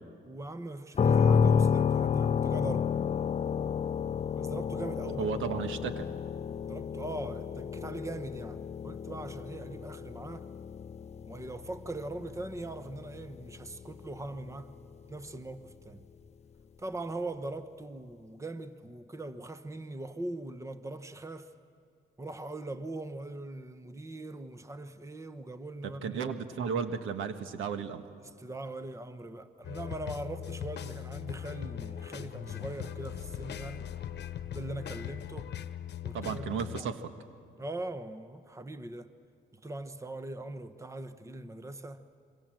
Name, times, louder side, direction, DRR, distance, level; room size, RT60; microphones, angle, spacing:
voice 1, 0.2-3.0 4.4-5.3 6.7-10.5 11.2-14.8 15.1-16.1 16.8-21.5 22.2-26.4 28.2-33.9 34.5-35.6 36.0-36.9 37.6-39.1 39.5-42.1, right 2 dB, 15° right, 1.1 m, -41 dB
sound 1, 0.9-14.7, left 6 dB, 35° left, 0.5 m, -31 dB
voice 2, 5.2-6.1 25.8-28.0 36.1-37.0, right 6 dB, 80° right, 1.5 m, -34 dB
sound 2, 29.6-36.8, left 10 dB, 60° left, 1.1 m, -40 dB
27.5 x 24.0 x 7.7 m
cardioid pair, 90°, 20 cm